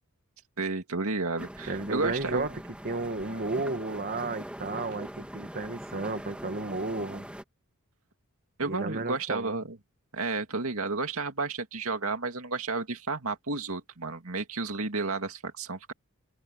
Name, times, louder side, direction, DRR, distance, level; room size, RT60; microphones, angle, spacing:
voice 1, 0.6-2.5 8.6-9.8 10.1-15.9, right 3 dB, 70° right, 2.5 m, -32 dB
sound 1, 1.4-7.4, equal, 5° right, 2.7 m, -42 dB
voice 2, 1.7-2.5 2.8-7.3 8.6-9.6, right 3 dB, 45° right, 1.7 m, -33 dB
head